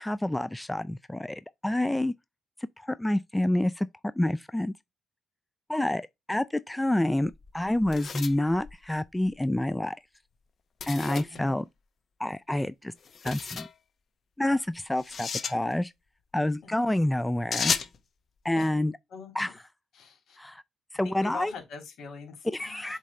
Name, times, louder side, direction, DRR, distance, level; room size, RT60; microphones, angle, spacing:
voice 1, 0.0-2.1 2.8-3.9 4.2-4.7 5.7-10.0 10.9-11.6 12.2-12.9 13.2-13.7 14.4-15.9 16.3-17.7 18.4-18.9 19.3-19.6 20.4-20.6 20.9-21.5 22.5-23.0, left 1 dB, 10° left, 0.3 m, -28 dB
sound 1, 7.1-9.4 10.8-11.4 13.0-13.7 15.0-15.6 17.5-18.0, left 6 dB, 50° left, 0.8 m, -33 dB
voice 2, 11.1-11.6 16.6-16.7 18.5-18.7 19.1-19.3 19.9-20.4 21.0-23.0, left 5 dB, 75° left, 2.8 m, -42 dB
7.5 x 3.2 x 4.2 m
cardioid pair, 90°, 0 cm